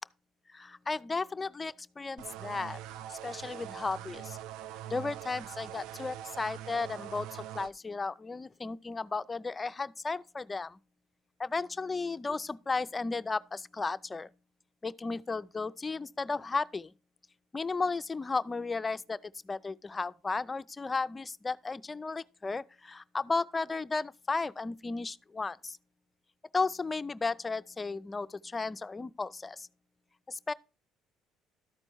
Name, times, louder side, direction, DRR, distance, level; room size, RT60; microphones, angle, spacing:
voice 1, 0.5-2.8 3.1-4.4 4.9-10.8 11.4-14.3 14.8-16.9 17.5-19.2 19.4-25.8 26.5-29.7 30.3-30.5, left 4 dB, 25° left, 0.4 m, -34 dB
sound 1, 2.2-7.7, right 11 dB, 80° right, 0.4 m, -43 dB
13.0 x 4.4 x 4.5 m
supercardioid pair, 90°, 0 cm